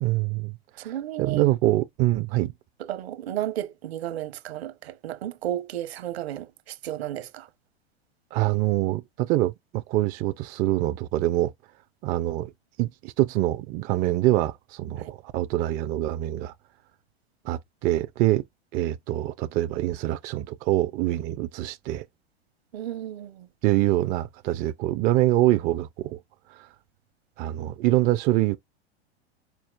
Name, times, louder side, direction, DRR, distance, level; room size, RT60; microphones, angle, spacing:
voice 1, 0.0-0.9 1.2-2.5 8.3-11.5 12.0-12.5 12.8-16.5 17.4-18.4 18.7-22.0 23.6-26.2 26.5-26.7 27.4-28.6, right 16 dB, 30° right, 0.4 m, -25 dB
voice 2, 0.8-1.5 2.8-7.5 15.0-15.1 22.7-23.5, right 12 dB, 70° right, 1.0 m, -33 dB
4.5 x 4.4 x 2.5 m
hypercardioid pair, 110°, 32 cm